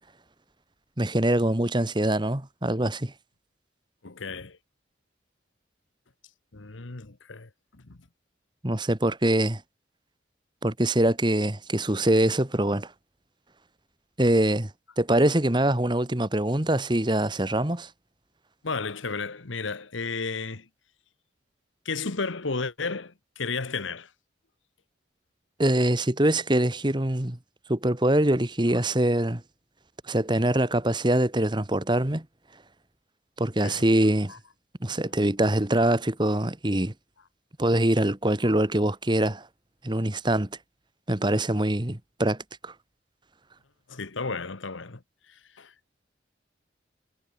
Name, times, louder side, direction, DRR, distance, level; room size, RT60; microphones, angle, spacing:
voice 1, 1.0-3.1 8.6-9.6 10.6-12.9 14.2-14.7 15.0-17.9 25.6-27.4 27.7-29.4 30.1-32.2 33.4-34.3 34.8-36.9 37.6-39.5 39.8-40.5 41.1-42.4 42.6-42.7, right 1 dB, 25° right, 1.5 m, -24 dB
voice 2, 4.0-4.6 6.5-8.0 18.6-20.7 21.8-24.1 33.6-33.8 34.3-34.4 38.4-38.5 43.9-45.0 45.3-45.7, left 4 dB, 90° left, 1.4 m, -33 dB
head